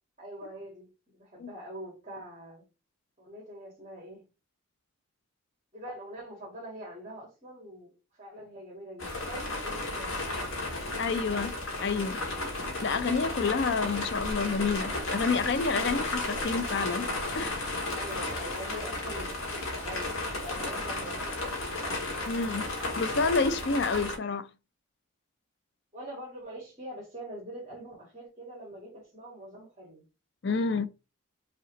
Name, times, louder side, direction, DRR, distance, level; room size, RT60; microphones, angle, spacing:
voice 1, 0.2-2.6 3.2-4.2 5.7-10.6 17.9-21.8 25.9-30.0, right 1 dB, 30° right, 1.8 m, -44 dB
sound 1, 9.0-24.2, left 2 dB, 70° left, 1.6 m, -33 dB
voice 2, 11.0-11.5 11.8-12.2 12.8-17.1 17.3-17.5 22.3-22.7 23.0-24.5 30.4-30.9, left 4 dB, 55° left, 0.5 m, -28 dB
5.6 x 3.0 x 3.0 m
head